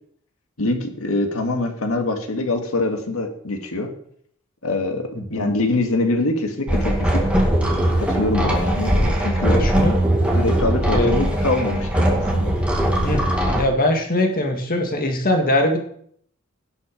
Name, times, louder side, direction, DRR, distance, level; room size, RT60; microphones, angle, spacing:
voice 1, 0.6-3.9 4.6-7.3 7.6-9.5 10.3-12.5, left 2 dB, 90° left, 5 dB, 1.9 m, -24 dB
voice 2, 5.1-5.5 9.5-10.0 10.9-11.2 13.0-13.2 13.5-15.8, left 1 dB, 45° left, 4 dB, 1.9 m, -21 dB
sound 1, 6.7-13.6, right 1 dB, 5° right, 2.1 m, -20 dB
17.0 x 6.2 x 5.1 m, 0.65 s
head